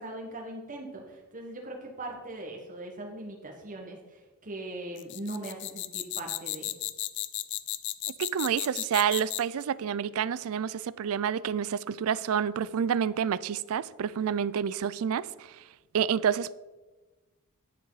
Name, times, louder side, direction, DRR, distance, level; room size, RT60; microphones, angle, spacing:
voice 1, 0.0-6.7, right 1 dB, 40° right, 1.4 m, -40 dB
sound 1, 5.0-9.6, left 15 dB, 55° left, 0.4 m, -34 dB
voice 2, 8.2-15.5 15.9-16.5, right 8 dB, 70° right, 0.4 m, -28 dB
9.8 x 8.3 x 4.0 m
head